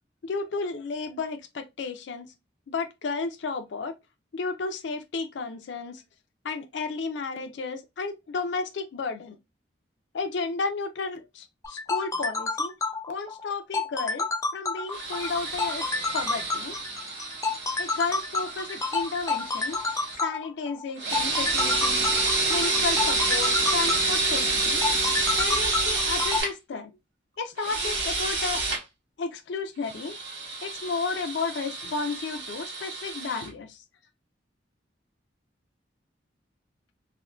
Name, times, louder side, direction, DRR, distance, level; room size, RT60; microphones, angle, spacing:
voice 1, 0.2-2.3 2.7-3.9 4.3-6.0 6.4-9.4 10.1-12.7 13.1-15.8 16.1-16.8 17.8-19.8 20.2-22.1 22.5-24.8 25.4-26.9 27.4-28.6 29.2-30.2 30.6-33.8, left 4 dB, 80° left, 0.4 m, -32 dB
sound 1, 11.6-26.4, left 3 dB, 15° left, 0.3 m, -29 dB
sound 2, 14.9-20.2 21.0-26.5 27.6-28.8 29.8-33.5, right 3 dB, 90° right, 1.3 m, -28 dB
3.5 x 2.1 x 2.2 m
head